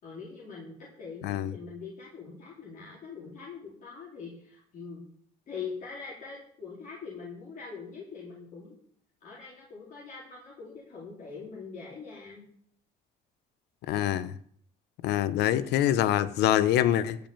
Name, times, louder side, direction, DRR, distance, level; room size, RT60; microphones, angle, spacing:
voice 1, 0.0-5.1 5.5-8.8 9.2-12.5, left 5 dB, 50° left, -5 dB, 3.9 m, -43 dB
voice 2, 13.9-14.3 15.0-17.2, left 12 dB, 80° left, 15 dB, 0.9 m, -25 dB
14.5 x 5.5 x 9.0 m, 0.62 s
cardioid pair, 110°, 17 cm